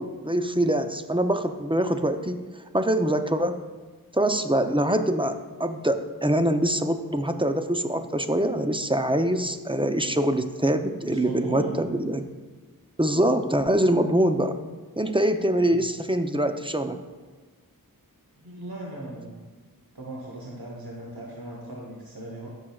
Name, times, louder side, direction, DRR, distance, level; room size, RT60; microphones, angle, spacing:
voice 1, 0.0-2.4 2.7-3.6 4.1-12.2 13.0-14.6 15.0-17.0, right 1 dB, 15° right, 7 dB, 0.5 m, -24 dB
voice 2, 11.0-11.8 15.7-15.8 18.4-19.4 19.9-22.5, right 2 dB, 90° right, -2 dB, 1.1 m, -37 dB
14.5 x 6.2 x 2.3 m, 1.3 s
wide cardioid pair, 45°, 36 cm